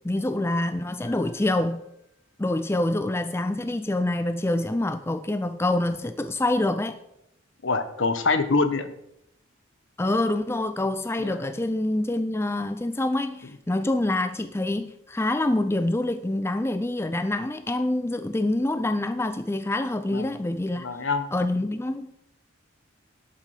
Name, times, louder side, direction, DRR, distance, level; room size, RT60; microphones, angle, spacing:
voice 1, 0.0-1.9 2.4-7.0 10.0-20.9 21.3-22.2, left 1 dB, 10° left, 0.4 m, -26 dB
Keyboard (musical), 1.0-2.8, left 5 dB, 35° right, 3.6 m, -56 dB
voice 2, 7.6-8.9 11.2-11.4 20.1-20.3 20.8-21.3, left 3 dB, 70° left, 1.1 m, -25 dB
12.0 x 8.4 x 5.0 m
head